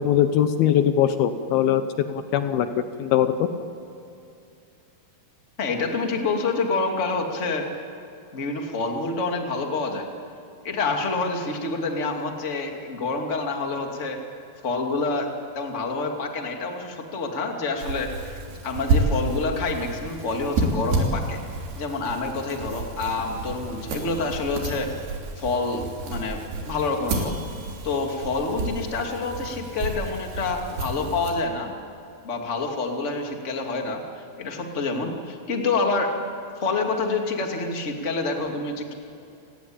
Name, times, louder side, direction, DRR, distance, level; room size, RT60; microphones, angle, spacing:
voice 1, 0.0-1.8 2.1-3.5, left 10 dB, 75° left, 9 dB, 2.7 m, -21 dB
voice 2, 5.6-7.7 8.3-10.1 10.6-14.2 14.6-15.3 15.5-18.4 18.6-21.4 21.7-24.9 25.4-27.3 27.8-31.7 32.2-34.0 34.4-36.1 36.6-38.9, left 3 dB, 20° left, 2 dB, 2.2 m, -27 dB
sound 1, 17.8-31.3, right 2 dB, 75° right, 5.1 m, -30 dB
29.5 x 19.5 x 8.8 m, 2.6 s
omnidirectional pair, 4.7 m